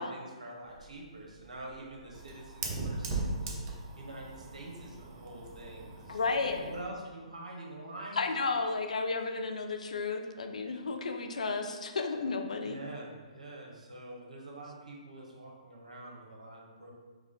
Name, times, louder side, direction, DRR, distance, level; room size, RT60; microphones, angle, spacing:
voice 1, 0.0-8.3 8.8-9.0 10.7-10.8 12.6-16.9, right 1 dB, 75° right, -1 dB, 1.0 m, -46 dB
Fire, 0.6-6.9, right 3 dB, 35° right, 0.6 m, -39 dB
voice 2, 6.1-6.6 8.2-12.8, left 4 dB, 75° left, 6 dB, 0.4 m, -33 dB
4.8 x 2.2 x 3.6 m, 1.4 s
figure-of-eight pair, 130°, 4 cm